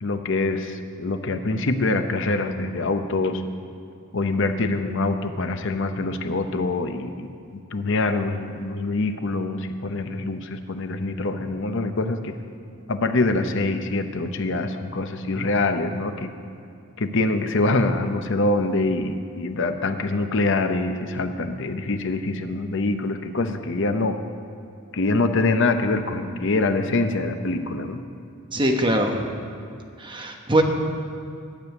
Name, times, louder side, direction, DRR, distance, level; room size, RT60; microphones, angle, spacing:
voice 1, 0.0-3.4 4.1-12.3 12.9-16.3 17.0-24.2 24.9-28.0, left 2 dB, 60° left, 7 dB, 0.7 m, -24 dB
voice 2, 28.5-29.3 30.0-30.6, right 1 dB, 20° right, 2 dB, 1.1 m, -22 dB
12.5 x 7.0 x 9.4 m, 2.5 s
head